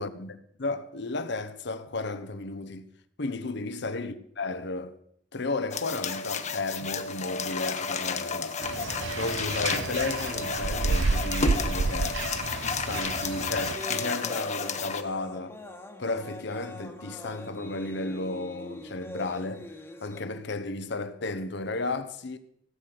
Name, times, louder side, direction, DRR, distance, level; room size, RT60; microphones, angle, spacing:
voice 1, 0.0-2.9 3.2-5.0 5.3-8.8 9.2-12.2 12.6-15.6 16.0-19.7 20.0-22.4, left 3 dB, 65° left, 1.0 m, -33 dB
sound 1, 5.7-15.0, left 5 dB, 40° left, 1.0 m, -32 dB
sound 2, 8.6-13.7, right 3 dB, 75° right, 0.7 m, -30 dB
sound 3, 13.0-20.2, left 1 dB, 15° left, 1.3 m, -44 dB
16.5 x 8.2 x 6.0 m
head